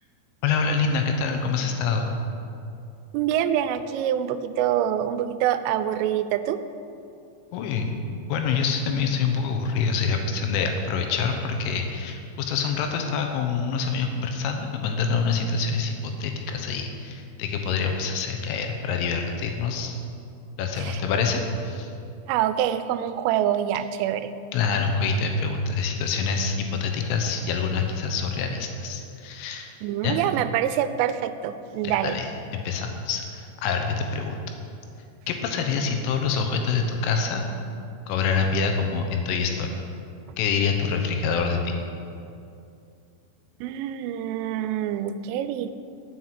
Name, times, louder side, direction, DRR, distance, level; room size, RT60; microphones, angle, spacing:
voice 1, 0.4-2.2 7.5-8.0 8.3-20.0 20.6-21.9 24.5-29.7 30.0-30.2 32.0-34.4 35.3-37.5 38.1-39.7 40.4-41.7, left 5 dB, 80° left, 4 dB, 3.4 m, -26 dB
voice 2, 3.1-6.6 20.8-21.0 22.3-24.3 29.8-32.2 43.6-45.7, right 10 dB, 85° right, 12 dB, 3.1 m, -25 dB
10.0 x 7.6 x 8.0 m, 2.5 s
omnidirectional pair, 5.6 m